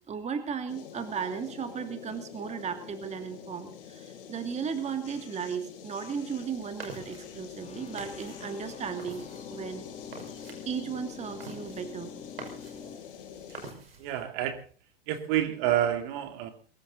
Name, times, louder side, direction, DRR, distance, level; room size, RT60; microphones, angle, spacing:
voice 1, 0.1-9.2 9.5-9.8 10.7-12.1 12.8-13.0, right 6 dB, 25° right, 8 dB, 2.5 m, -35 dB
sound 1, 0.7-13.7, left 8 dB, 70° left, 4.1 m, -46 dB
sound 2, 6.3-14.2, right 3 dB, 85° right, 5.5 m, -48 dB
sound 3, 7.6-13.0, left 7 dB, 20° left, 1.3 m, -47 dB
voice 2, 14.0-14.6 15.1-16.5, right 11 dB, 55° right, 8 dB, 2.7 m, -28 dB
23.0 x 14.5 x 4.1 m, 0.37 s
hypercardioid pair, 100°, 29 cm